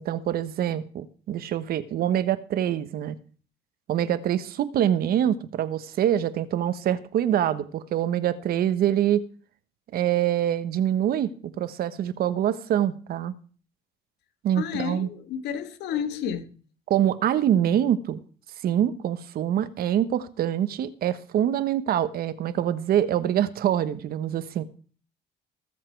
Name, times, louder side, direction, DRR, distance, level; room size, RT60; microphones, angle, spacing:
voice 1, 0.0-3.2 3.9-9.2 9.9-13.3 14.4-15.1 16.9-18.2 18.6-24.6, right 10 dB, 65° right, 1.2 m, -25 dB
voice 2, 14.5-16.5, left 8 dB, 85° left, 1.7 m, -31 dB
20.0 x 7.5 x 4.6 m
cardioid pair, 110°, 17 cm